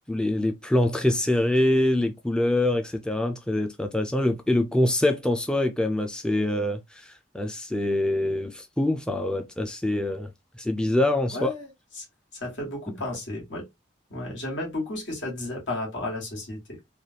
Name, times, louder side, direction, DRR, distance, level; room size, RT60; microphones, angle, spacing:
voice 1, 0.1-10.3 10.6-11.5, left 1 dB, 5° left, 0.3 m, -25 dB
voice 2, 11.3-12.1 12.3-13.7 14.1-16.8, left 2 dB, 85° left, 1.7 m, -33 dB
3.3 x 2.3 x 2.7 m
head